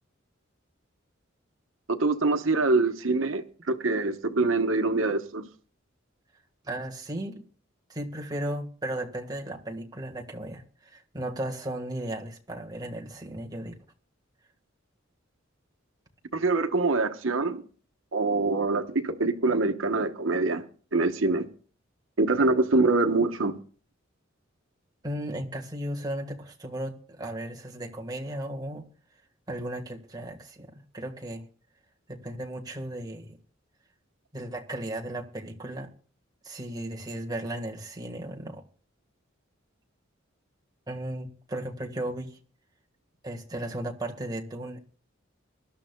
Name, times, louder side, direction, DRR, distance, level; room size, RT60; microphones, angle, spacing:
voice 1, 1.9-5.5 16.3-17.6 18.1-20.6 20.9-21.5 22.2-23.6, right 3 dB, 80° right, 1.1 m, -24 dB
voice 2, 6.6-7.4 7.9-13.8 25.0-28.9 29.5-31.4 32.1-33.4 34.3-35.9 36.4-38.6 40.9-42.4 43.2-44.8, right 1 dB, 20° right, 1.6 m, -35 dB
24.0 x 12.0 x 2.3 m
head